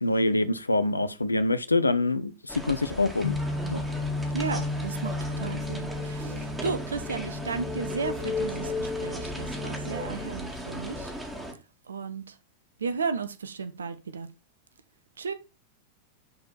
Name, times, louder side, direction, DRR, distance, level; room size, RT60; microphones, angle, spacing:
voice 1, 0.0-3.4 3.7-3.8, left 2 dB, 80° left, 0.8 m, -25 dB
sound 1, 2.5-11.5, right 1 dB, 10° right, 2.4 m, -38 dB
sound 2, 3.2-10.3, left 3 dB, 40° left, 2.0 m, -33 dB
voice 2, 4.3-11.1 11.9-12.4 12.8-14.3 15.2-15.3, right 5 dB, 70° right, 0.9 m, -34 dB
10.5 x 4.4 x 4.2 m
figure-of-eight pair, 90°, 0 cm